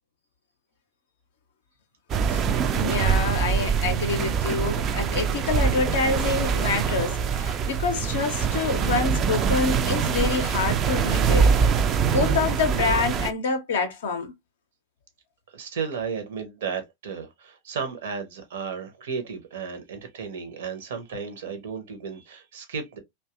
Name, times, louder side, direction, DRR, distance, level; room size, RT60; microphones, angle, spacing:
sound 1, 2.1-13.3, right 6 dB, 30° right, 0.3 m, -24 dB
voice 1, 2.7-11.5 12.1-14.3, left 4 dB, 60° left, 0.5 m, -27 dB
voice 2, 15.5-23.0, right 6 dB, 60° right, 0.7 m, -34 dB
2.6 x 2.3 x 2.3 m
figure-of-eight pair, 90°, 0 cm